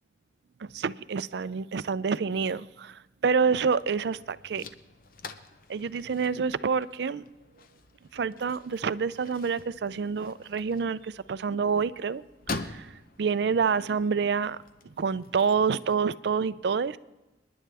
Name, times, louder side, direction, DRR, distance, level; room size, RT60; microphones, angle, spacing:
voice 1, 0.6-4.6 5.7-7.2 8.1-12.2 12.5-14.6 15.0-17.0, right 5 dB, 65° right, 16 dB, 0.4 m, -28 dB
sound 1, 3.6-16.0, left 3 dB, 50° left, 0.7 m, -45 dB
30.0 x 10.5 x 3.4 m, 1.1 s
head